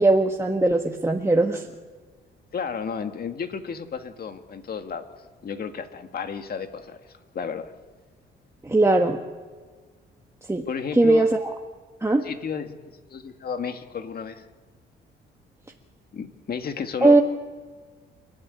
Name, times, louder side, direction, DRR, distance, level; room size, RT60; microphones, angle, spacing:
voice 1, 0.0-1.6 8.6-9.2 10.5-10.7 10.9-11.3 12.0-12.2 17.0-17.2, right 2 dB, 15° right, 2 dB, 1.6 m, -19 dB
voice 2, 2.5-5.1 5.4-7.7 10.7-11.3 12.2-12.8 13.1-14.5 16.1-17.2, left 6 dB, 50° left, 7 dB, 2.0 m, -32 dB
29.0 x 12.0 x 10.0 m, 1.5 s
cardioid pair, 90°, 20 cm